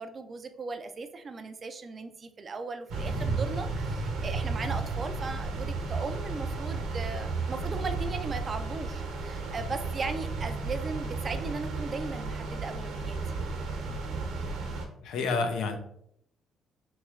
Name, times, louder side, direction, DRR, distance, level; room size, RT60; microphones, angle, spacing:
voice 1, 0.0-13.2, right 4 dB, 30° right, 9 dB, 0.4 m, -37 dB
sound 1, 2.9-14.9, right 3 dB, 80° right, 0.9 m, -33 dB
voice 2, 15.0-15.8, left 4 dB, 85° left, 6 dB, 0.6 m, -29 dB
3.2 x 3.1 x 3.6 m, 0.71 s
cardioid pair, 140°, 0 cm